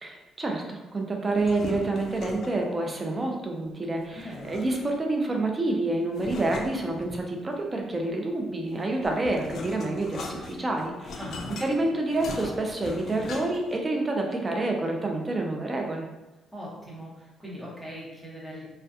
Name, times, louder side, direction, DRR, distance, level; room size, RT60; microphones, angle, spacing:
voice 1, 0.0-11.2 11.6-16.1, right 2 dB, 25° right, 1 dB, 0.4 m, -28 dB
sound 1, 1.3-2.7 4.1-5.1 6.1-7.5 8.7-13.8, left 3 dB, 65° left, 0.3 m, -39 dB
voice 2, 4.1-4.5 11.2-11.5 16.5-18.6, equal, ahead, -6 dB, 0.9 m, -40 dB
2.3 x 2.2 x 2.6 m, 1.0 s
cardioid pair, 90°, 0 cm